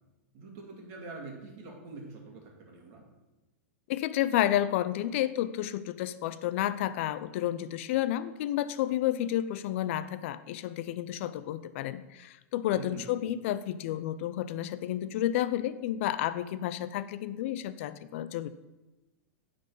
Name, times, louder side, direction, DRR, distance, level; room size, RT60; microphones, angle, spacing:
voice 1, 0.3-3.0 12.7-13.1, right 3 dB, 40° right, 0 dB, 2.1 m, -45 dB
voice 2, 3.9-18.5, left 12 dB, 55° left, 14 dB, 0.4 m, -31 dB
9.0 x 4.0 x 5.3 m, 1.0 s
supercardioid pair, 140°, 8 cm